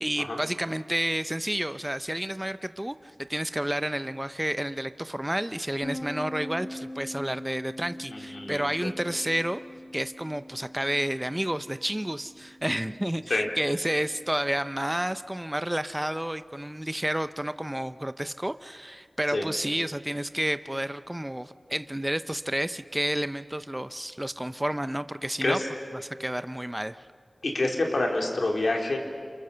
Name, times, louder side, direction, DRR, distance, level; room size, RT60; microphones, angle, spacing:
voice 1, 0.0-9.6 9.9-25.6 26.0-27.0, right 1 dB, 15° right, 12 dB, 0.7 m, -30 dB
sound 1, 5.8-15.3, left 1 dB, 25° left, 7.2 m, -43 dB
voice 2, 8.1-8.9 13.3-13.5 19.3-19.5 25.4-25.7 27.4-29.0, left 2 dB, 85° left, 1 dB, 3.9 m, -27 dB
29.0 x 28.5 x 6.8 m, 2.1 s
wide cardioid pair, 60°, 0 cm